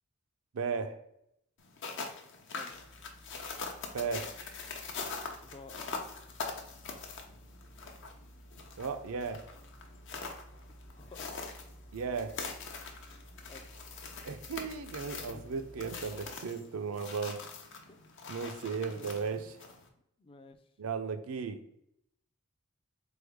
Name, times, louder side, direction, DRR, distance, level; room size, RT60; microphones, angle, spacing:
voice 1, 0.5-1.0 3.9-4.3 8.8-9.4 11.9-12.4 14.3-17.4 18.3-19.6 20.8-21.6, right 5 dB, 80° right, 8 dB, 0.5 m, -35 dB
sound 1, 1.6-19.9, left 4 dB, 60° left, 0.7 m, -43 dB
sound 2, 2.7-16.3, right 1 dB, 80° left, 1.0 m, -55 dB
voice 2, 5.4-5.8 10.5-10.6 11.0-11.4 13.5-13.7 15.3-15.4 15.8-15.9 17.9-18.0 18.9-19.2 20.2-20.6, left 3 dB, 25° left, 7 dB, 0.4 m, -52 dB
3.8 x 3.5 x 3.4 m, 0.79 s
head